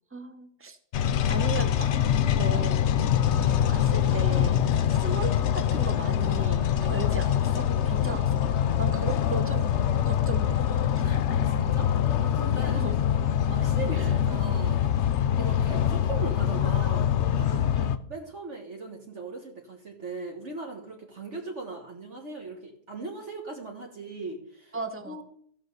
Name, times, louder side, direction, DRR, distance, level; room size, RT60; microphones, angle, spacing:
voice 1, 0.1-0.8 1.3-1.9 2.4-3.0 3.4-4.6 4.9-10.7 12.7-13.0 13.9-14.2 15.5-15.7 17.8-17.9 24.7-25.2, right 3 dB, 15° right, 9 dB, 0.4 m, -37 dB
sound 1, 0.9-18.0, left 9 dB, 60° left, 0.8 m, -24 dB
voice 2, 11.0-12.8 13.5-14.8 15.4-17.1 17.4-17.6 18.1-24.7 25.0-25.2, right 3 dB, 50° right, 1 dB, 1.8 m, -39 dB
14.0 x 5.5 x 6.6 m, 0.65 s
omnidirectional pair, 1.7 m